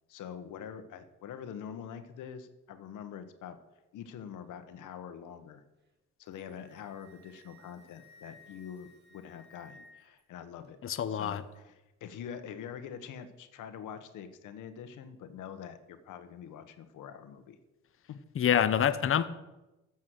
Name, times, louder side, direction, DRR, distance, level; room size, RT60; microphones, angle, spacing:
voice 1, 0.1-3.6 3.9-5.6 6.2-10.8 11.1-17.6, left 8 dB, 80° left, 9 dB, 1.3 m, -45 dB
Wind instrument woodwind instrument, 6.3-10.2, left 1 dB, 35° right, 2.4 m, -58 dB
voice 2, 10.8-11.4 18.4-19.2, left 9 dB, 45° left, 12 dB, 0.9 m, -26 dB
14.0 x 7.4 x 6.4 m, 1.0 s
cardioid pair, 90°, 30 cm